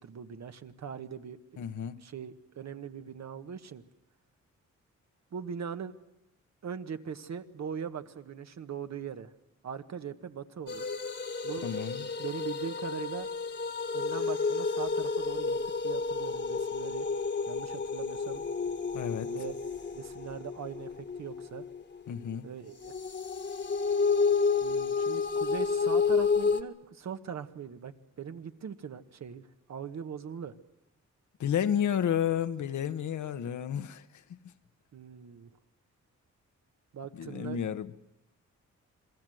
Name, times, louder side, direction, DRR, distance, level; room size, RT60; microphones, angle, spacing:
voice 1, 0.0-1.4 2.0-3.8 5.3-5.9 6.6-9.3 9.6-10.8 11.4-11.7 12.2-13.3 13.9-17.0 17.5-18.4 19.2-19.5 19.9-21.7 22.4-22.9 24.6-30.5 34.9-35.5 36.9-37.6, right 7 dB, 65° right, 1.4 m, -40 dB
voice 2, 1.6-2.0 11.6-12.1 18.9-19.3 22.1-22.5 31.4-34.0 34.3-34.4 37.1-37.9, left 9 dB, 75° left, 1.2 m, -31 dB
sound 1, 10.7-22.2 22.8-26.6, left 5 dB, 35° left, 1.5 m, -30 dB
28.5 x 21.0 x 7.8 m
cardioid pair, 85°, 30 cm